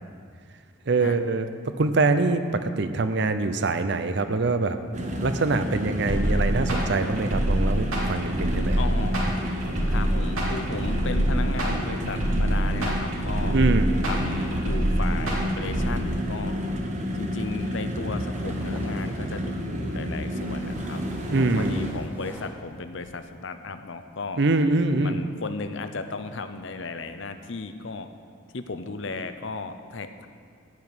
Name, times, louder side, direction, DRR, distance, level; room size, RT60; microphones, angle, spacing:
voice 1, 0.9-1.5 1.8-4.8 5.2-8.8 13.5-14.0 21.3-21.8 24.4-25.2, right 3 dB, 55° right, 9 dB, 0.6 m, -24 dB
sound 1, 4.9-21.9, equal, 35° right, 1.1 m, -30 dB
sound 2, 6.1-15.9, equal, 90° right, 2.6 m, -25 dB
voice 2, 8.8-9.3 9.9-13.6 14.0-16.6 17.1-21.0 21.3-24.4 25.0-28.1 28.5-30.3, left 3 dB, 65° left, 9 dB, 0.7 m, -35 dB
sound 3, 18.3-19.6 20.0-23.4, equal, 10° right, 1.3 m, -42 dB
15.0 x 5.0 x 9.3 m, 2.1 s
head